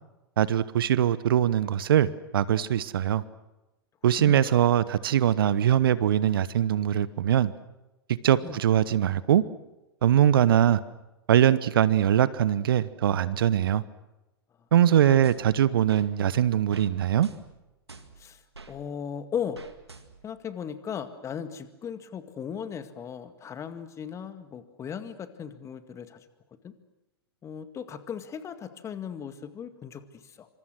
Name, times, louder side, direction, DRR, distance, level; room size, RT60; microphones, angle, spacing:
voice 1, 0.4-3.2 4.0-7.5 8.2-9.4 10.0-10.8 11.3-13.8 14.7-17.3, right 10 dB, 60° right, 17 dB, 1.0 m, -22 dB
voice 2, 4.0-4.5 8.4-8.6 15.1-15.3 18.2-18.4 18.7-19.6 20.2-26.2 26.6-26.7 27.4-30.5, left 8 dB, 20° left, 10 dB, 2.0 m, -37 dB
sound 1, 15.2-16.1 16.7-16.9 17.2-18.7 19.5-20.4, right 4 dB, 85° right, 2.1 m, -48 dB
27.0 x 26.0 x 6.3 m, 1.0 s
figure-of-eight pair, 100°, 13 cm